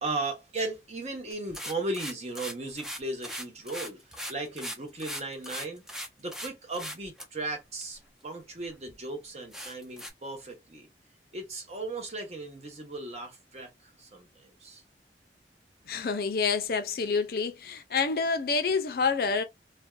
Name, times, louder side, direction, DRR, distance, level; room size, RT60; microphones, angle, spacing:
voice 1, 0.0-5.8 6.2-10.9 11.3-14.8, right 2 dB, 40° right, 0.8 m, -36 dB
sound 1, 1.3-6.5 6.7-7.2 7.8-7.9 8.5-8.6 8.9-9.0 9.5-10.1, equal, 5° right, 0.4 m, -39 dB
voice 2, 15.9-19.4, left 5 dB, 55° left, 0.5 m, -28 dB
2.6 x 2.2 x 2.2 m
head